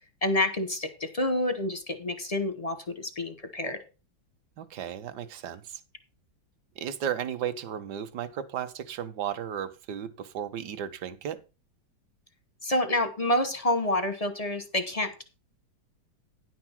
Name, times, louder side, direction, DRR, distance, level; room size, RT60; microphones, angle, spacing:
voice 1, 0.2-3.8 12.6-15.2, left 1 dB, 35° left, 9 dB, 0.6 m, -28 dB
voice 2, 4.6-5.8 6.8-11.4, right 9 dB, 65° right, 12 dB, 1.3 m, -34 dB
10.0 x 6.1 x 5.7 m, 0.31 s
omnidirectional pair, 2.1 m